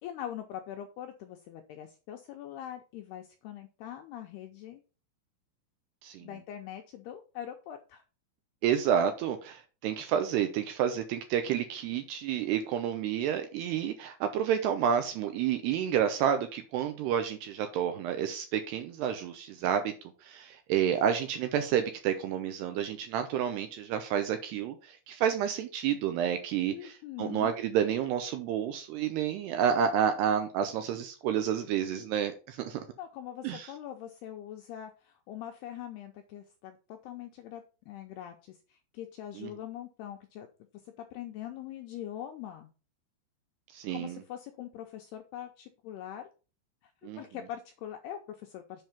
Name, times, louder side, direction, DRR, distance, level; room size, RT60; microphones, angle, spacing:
voice 1, 0.0-4.8 6.2-8.0 26.7-27.6 33.0-40.5 41.0-42.7 43.9-46.3 46.8-46.9 47.2-48.9, left 11 dB, 80° left, 2.3 m, -43 dB
voice 2, 8.6-19.9 20.2-32.8 33.4-33.7 39.4-39.5 43.7-44.2 47.0-47.2, right 9 dB, 80° right, 2.5 m, -30 dB
7.4 x 5.4 x 5.8 m
omnidirectional pair, 5.5 m